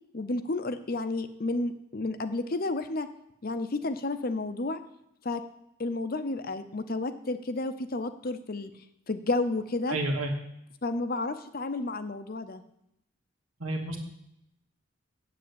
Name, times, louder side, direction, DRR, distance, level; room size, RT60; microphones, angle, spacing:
voice 1, 0.1-3.1 3.4-4.8 5.2-5.4 5.8-8.7 9.1-10.0 10.8-12.6, left 2 dB, 45° left, 10 dB, 0.7 m, -31 dB
voice 2, 9.9-10.3 13.6-14.0, right 2 dB, 90° right, 1 dB, 2.2 m, -30 dB
7.7 x 7.7 x 8.7 m, 0.80 s
head